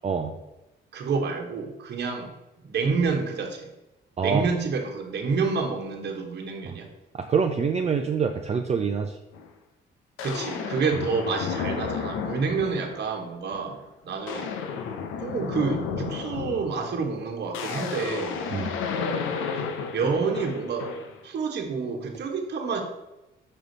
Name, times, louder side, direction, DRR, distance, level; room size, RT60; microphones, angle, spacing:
voice 1, 0.0-0.3 4.2-4.4 6.6-6.8 7.1-9.2 18.5-18.7, right 6 dB, 35° right, 4 dB, 0.5 m, -25 dB
voice 2, 0.9-2.3 2.6-3.7 4.2-6.9 10.2-13.8 14.0-14.5 15.2-18.4 19.9-20.9 21.2-22.8, right 5 dB, 60° right, 3 dB, 1.2 m, -28 dB
sound 1, 9.3-9.5 10.2-13.1 13.5-13.8 14.1-21.2, left 6 dB, 85° left, 0.7 m, -32 dB
5.5 x 5.0 x 4.0 m, 0.97 s
cardioid pair, 90°, 20 cm